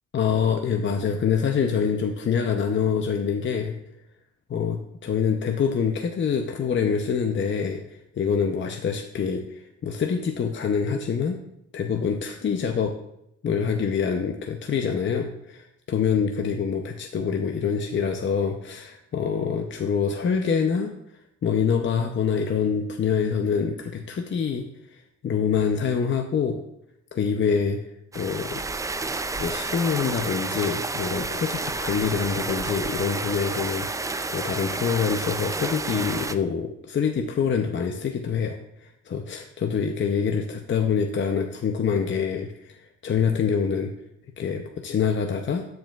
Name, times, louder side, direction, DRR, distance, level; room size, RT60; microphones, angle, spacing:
voice 1, 0.1-3.8 4.5-11.4 11.7-12.9 13.4-20.9 21.4-24.7 24.9-26.6 27.1-27.8 28.1-28.6 29.1-43.9 44.4-45.7, left 6 dB, 40° left, 4 dB, 0.7 m, -25 dB
sound 1, 28.1-36.3, right 3 dB, 10° right, 0.3 m, -30 dB
13.5 x 4.8 x 2.4 m, 0.79 s
cardioid pair, 90°, 30 cm